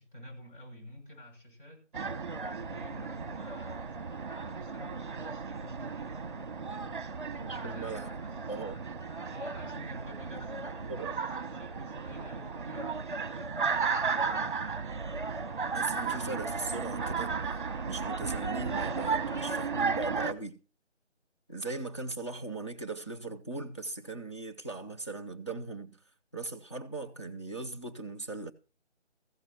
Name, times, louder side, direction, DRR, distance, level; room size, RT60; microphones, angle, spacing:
voice 1, 0.0-1.9 2.2-7.0 7.5-8.5 9.3-14.5, equal, 45° left, 6.7 m, -50 dB
sound 1, 1.9-20.3, right 5 dB, 45° right, 0.9 m, -34 dB
voice 2, 7.4-8.1 8.5-8.8 10.9-11.1 15.7-17.3 17.8-20.6 21.5-26.0 26.3-28.5, right 3 dB, 25° left, 0.6 m, -39 dB
15.0 x 13.5 x 2.9 m
figure-of-eight pair, 170°, 36 cm